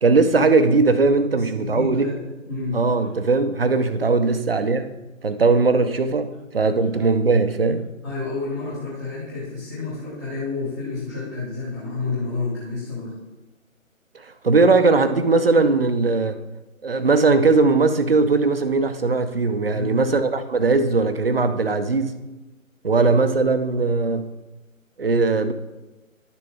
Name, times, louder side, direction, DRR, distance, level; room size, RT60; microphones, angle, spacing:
voice 1, 0.0-2.1 2.7-4.9 5.2-7.9 14.4-16.4 16.8-22.2 22.8-24.3 25.0-25.5, right 3 dB, 45° right, 10 dB, 0.7 m, -19 dB
voice 2, 1.3-2.2 2.5-2.8 8.0-13.2 19.7-20.1, left 3 dB, 10° left, -10 dB, 1.1 m, -29 dB
11.5 x 6.9 x 3.6 m, 1.1 s
figure-of-eight pair, 150°, 41 cm